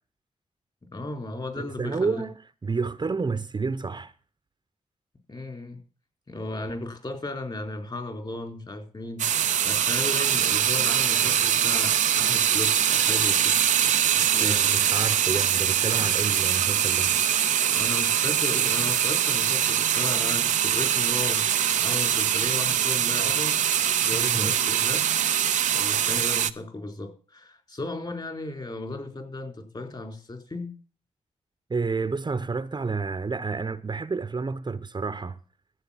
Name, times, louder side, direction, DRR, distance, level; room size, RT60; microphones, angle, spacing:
voice 1, 0.9-2.2 5.3-5.8 6.3-9.3 9.6-13.6 14.2-14.6 17.7-23.6 24.0-25.1 25.7-30.7, left 2 dB, 40° left, 4.2 m, -35 dB
voice 2, 1.6-4.1 14.3-17.2 24.1-24.5 31.7-35.4, right 4 dB, 35° right, 0.8 m, -30 dB
sound 1, 9.2-26.5, right 9 dB, 90° right, 0.6 m, -23 dB
14.5 x 8.0 x 5.8 m
cardioid pair, 60°, 12 cm